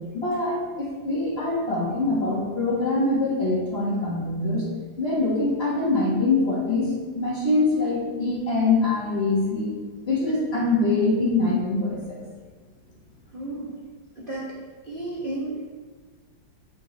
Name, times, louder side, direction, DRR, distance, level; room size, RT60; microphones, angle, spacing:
voice 1, 0.1-4.6 5.0-6.9 7.1-9.8 10.1-12.0, left 2 dB, 35° left, -5 dB, 1.9 m, -24 dB
voice 2, 13.3-13.7 14.2-14.5 14.9-15.7, right 2 dB, 35° right, -6 dB, 1.1 m, -32 dB
8.6 x 5.8 x 3.3 m, 1.4 s
omnidirectional pair, 2.0 m